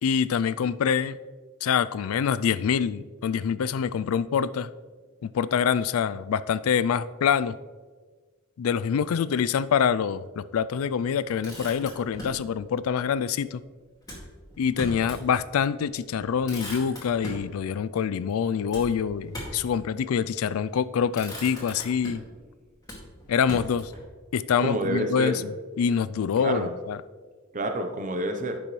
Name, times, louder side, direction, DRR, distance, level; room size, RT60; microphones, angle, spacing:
voice 1, 0.0-1.2 1.6-4.7 5.2-7.5 8.6-13.6 14.6-22.2 23.3-23.9 24.3-25.5 25.8-27.0, left 7 dB, 80° left, 16 dB, 0.3 m, -25 dB
Motor vehicle (road), 11.2-12.4 14.0-15.3 15.7-15.8 16.1-17.5 18.7-19.7 20.5-20.8 21.1-22.4 22.8-24.0, equal, 15° left, 2.1 m, -39 dB
voice 2, 24.6-25.4 26.4-26.7 27.5-28.6, right 1 dB, 35° right, 6 dB, 0.7 m, -28 dB
10.0 x 6.8 x 3.2 m, 1.4 s
head